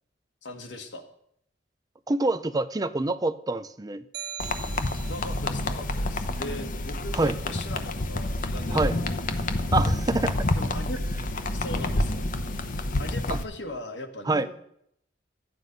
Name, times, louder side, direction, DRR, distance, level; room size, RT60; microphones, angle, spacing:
voice 1, 0.4-1.0 5.1-9.4 10.5-11.0 11.5-12.3 13.0-14.5, left 1 dB, 80° left, 5 dB, 1.6 m, -39 dB
voice 2, 2.1-4.0 7.2-7.3 8.7-9.0 9.7-10.4 13.3-13.4 14.3-14.5, right 2 dB, 20° right, 13 dB, 0.5 m, -26 dB
sound 1, 4.1-5.5, right 8 dB, 65° right, 1.2 m, -40 dB
sound 2, 4.4-13.4, left 1 dB, 50° left, 0.9 m, -28 dB
12.5 x 9.5 x 5.3 m, 0.71 s
head